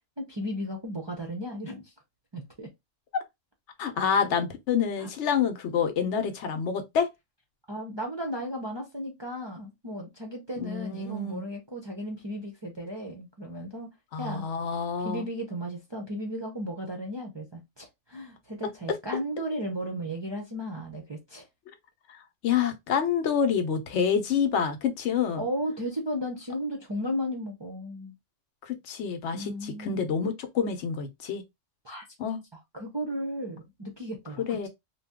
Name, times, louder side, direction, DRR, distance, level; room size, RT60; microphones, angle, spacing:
voice 1, 0.2-1.9 2.3-2.7 3.8-3.9 4.2-4.3 5.0-5.1 7.7-14.5 15.0-21.5 25.4-28.1 29.3-30.1 31.8-32.0 32.7-34.7, equal, 35° right, 0.5 m, -35 dB
voice 2, 3.8-7.1 10.6-11.4 14.1-15.3 22.1-22.2 22.4-25.5 28.6-31.4 32.2-32.4 34.5-34.7, left 7 dB, 75° left, 0.9 m, -27 dB
2.6 x 2.2 x 3.4 m
omnidirectional pair, 1.2 m